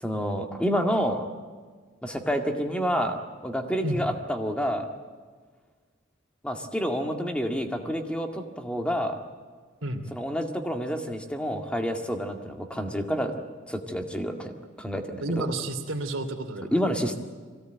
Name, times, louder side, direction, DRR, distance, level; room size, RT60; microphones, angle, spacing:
voice 1, 0.0-1.3 2.0-3.2 3.4-4.9 6.4-9.2 10.1-13.4 13.7-14.5 14.8-15.5 16.7-17.2, equal, 5° left, 4 dB, 1.9 m, -28 dB
voice 2, 15.2-16.8, right 2 dB, 90° right, 5 dB, 2.8 m, -30 dB
23.5 x 17.0 x 9.2 m, 1.5 s
head